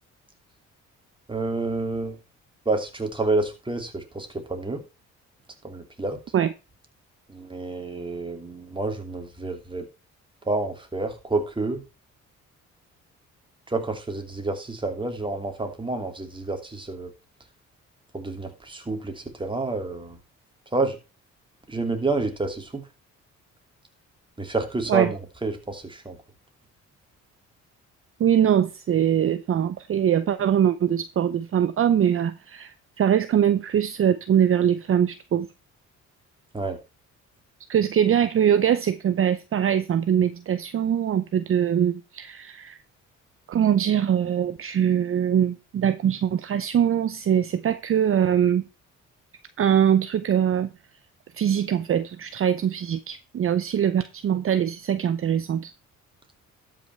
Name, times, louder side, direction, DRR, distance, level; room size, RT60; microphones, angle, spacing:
voice 1, 1.3-2.2 2.6-4.8 5.6-6.2 7.3-9.9 10.4-11.8 13.7-17.1 18.1-20.2 20.7-21.0 21.7-22.8 24.4-26.2 36.5-36.8, right 3 dB, 15° right, 2.7 m, -29 dB
voice 2, 28.2-35.5 37.7-42.8 43.5-48.6 49.6-50.7 51.3-55.7, right 9 dB, 45° right, 0.7 m, -22 dB
12.5 x 5.9 x 4.4 m
cardioid pair, 90°, 30 cm